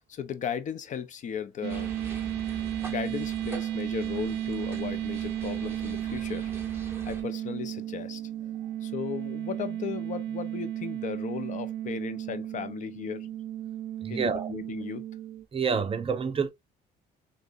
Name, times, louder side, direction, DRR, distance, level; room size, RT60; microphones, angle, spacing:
voice 1, 0.1-1.9 2.5-6.8 7.0-8.2 8.8-13.3 14.1-15.0, left 8 dB, 50° left, 0.7 m, -36 dB
sound 1, 1.6-15.4, right 12 dB, 80° right, 0.5 m, -34 dB
sound 2, 1.7-7.2, right 3 dB, 15° right, 1.3 m, -43 dB
voice 2, 14.0-14.5 15.5-16.5, right 6 dB, 35° right, 0.7 m, -28 dB
6.3 x 2.3 x 2.5 m
cardioid pair, 110°, 17 cm